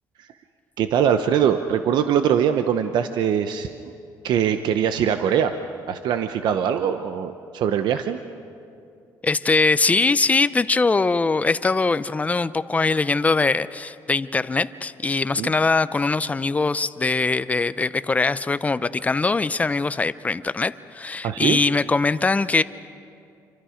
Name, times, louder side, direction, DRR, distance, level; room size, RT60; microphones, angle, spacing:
voice 1, 0.8-3.7 4.2-5.6 5.9-8.2 15.4-15.5 21.2-21.6, right 8 dB, 70° right, 8 dB, 0.8 m, -22 dB
voice 2, 9.2-22.6, left 3 dB, 20° left, 15 dB, 0.6 m, -22 dB
28.0 x 25.0 x 5.1 m, 2.5 s
cardioid pair, 110°, 8 cm